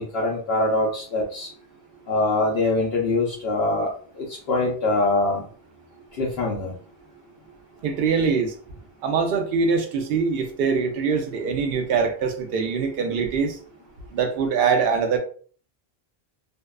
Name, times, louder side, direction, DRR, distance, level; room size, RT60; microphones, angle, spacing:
voice 1, 0.0-1.5 2.1-3.9 4.1-5.4 6.2-6.7, left 2 dB, 75° left, 0.8 m, -23 dB
voice 2, 7.8-8.5 9.0-13.6 14.1-15.2, right 5 dB, 70° right, 0.7 m, -23 dB
2.6 x 2.2 x 2.2 m
omnidirectional pair, 1.0 m